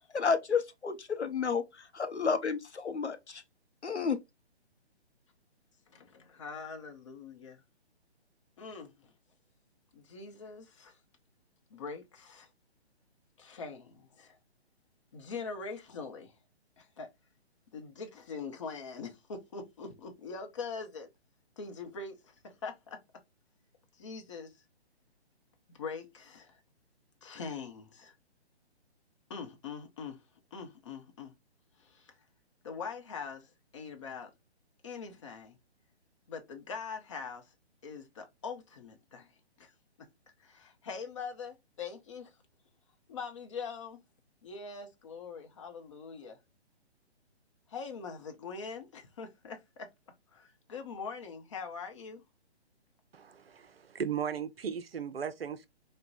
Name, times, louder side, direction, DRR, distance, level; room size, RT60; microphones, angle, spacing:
voice 1, 0.1-3.4 3.8-4.2, left 5 dB, 85° left, 0.8 m, -31 dB
voice 2, 5.9-7.6 8.6-9.1 9.9-11.0 11.7-12.5 13.4-14.4 15.1-16.4 16.8-17.1 17.7-21.1 21.6-23.0 23.9-24.6 25.7-26.6 27.2-28.2 29.3-31.3 31.8-32.2 32.6-34.3 34.8-35.6 36.3-37.5 37.8-40.1 40.4-42.4 43.1-44.0 44.4-46.4 47.7-49.9 50.3-52.2, left 5 dB, 30° left, 0.7 m, -43 dB
voice 3, 53.1-55.7, right 7 dB, 60° right, 0.5 m, -36 dB
4.6 x 2.2 x 2.5 m
figure-of-eight pair, 135°, 33 cm